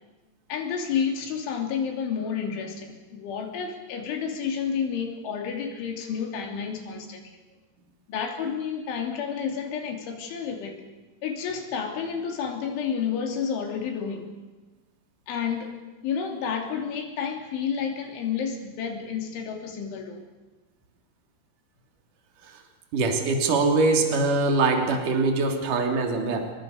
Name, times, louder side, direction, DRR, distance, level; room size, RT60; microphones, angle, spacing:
voice 1, 0.5-7.3 8.1-10.8 11.2-14.3 15.3-15.7 16.0-20.3, left 7 dB, 85° left, 3 dB, 5.6 m, -30 dB
voice 2, 22.9-26.5, right 3 dB, 45° right, 3 dB, 4.4 m, -23 dB
28.5 x 23.5 x 6.7 m, 1.2 s
omnidirectional pair, 5.4 m